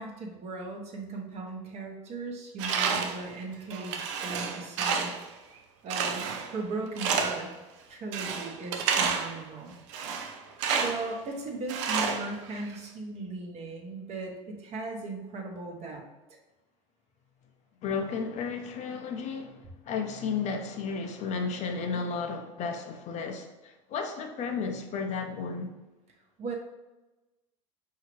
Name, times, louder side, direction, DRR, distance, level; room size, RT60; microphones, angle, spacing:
voice 1, 0.0-5.1 5.8-7.5 7.9-9.8 10.8-16.0 26.4-26.5, right 3 dB, 40° right, 1.0 m, -37 dB
Tools, 2.6-3.3 3.7-5.3 5.9-6.6 7.0-7.5 8.1-9.4 9.9-11.1 11.7-12.7, right 6 dB, 70° right, 0.5 m, -30 dB
voice 2, 17.8-25.7, left 5 dB, 45° left, 0.6 m, -33 dB
4.8 x 2.8 x 3.1 m
hypercardioid pair, 95°, 16 cm